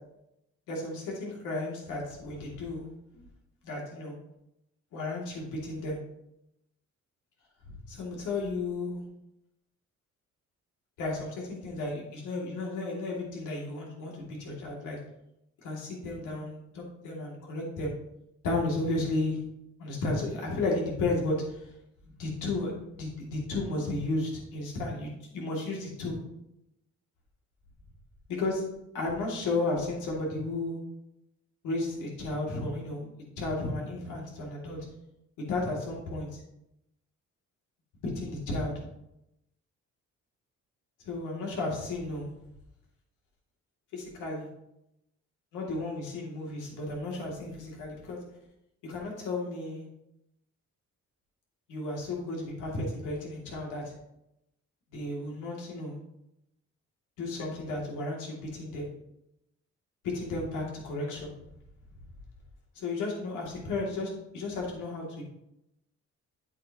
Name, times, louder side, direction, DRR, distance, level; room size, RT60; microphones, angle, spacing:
voice 1, 0.7-2.9 3.2-3.3 3.6-4.2 4.9-6.0 7.7-9.0 11.0-15.0 15.6-17.9 18.4-19.4 19.8-21.7 22.1-22.7 23.0-26.2 28.3-28.6 28.9-30.8 31.6-33.1 33.4-34.8 35.4-36.3 38.0-38.7 41.0-42.3 43.9-44.5 45.5-48.2 48.8-49.9 51.7-53.9 54.9-56.0 57.2-58.9 60.0-61.3 62.7-65.2, left 2 dB, 90° left, -2 dB, 2.5 m, -33 dB
8.3 x 8.1 x 2.9 m, 0.84 s
cardioid pair, 90°, 30 cm